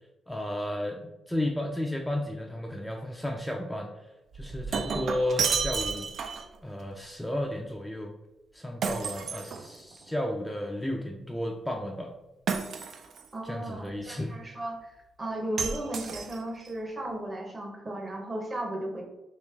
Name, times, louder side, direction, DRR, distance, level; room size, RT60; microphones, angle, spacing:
voice 1, 0.3-3.9 4.3-6.1 6.6-8.1 8.5-12.1 13.4-14.3, left 1 dB, 5° left, 1 dB, 0.4 m, -33 dB
Shatter, 4.3-6.6 8.8-10.1 12.5-13.3 15.6-16.7, right 5 dB, 60° right, 0.4 m, -31 dB
voice 2, 13.3-14.9 15.2-19.0, right 1 dB, 30° right, 2 dB, 0.8 m, -35 dB
3.2 x 2.9 x 3.3 m, 0.98 s
cardioid pair, 90°, 0 cm